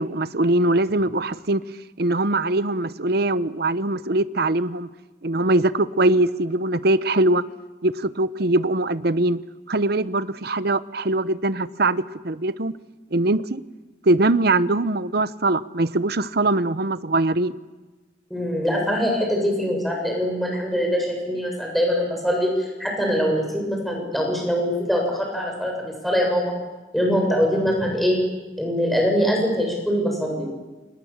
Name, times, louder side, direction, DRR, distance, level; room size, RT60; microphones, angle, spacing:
voice 1, 0.0-1.6 2.0-4.9 5.2-7.4 7.8-9.4 9.7-12.7 13.1-13.6 14.0-17.5, right 2 dB, 60° right, 15 dB, 0.9 m, -22 dB
voice 2, 18.3-26.5 26.9-28.2 28.6-30.5, equal, ahead, 0 dB, 7.1 m, -23 dB
29.0 x 26.5 x 7.4 m, 1.2 s
head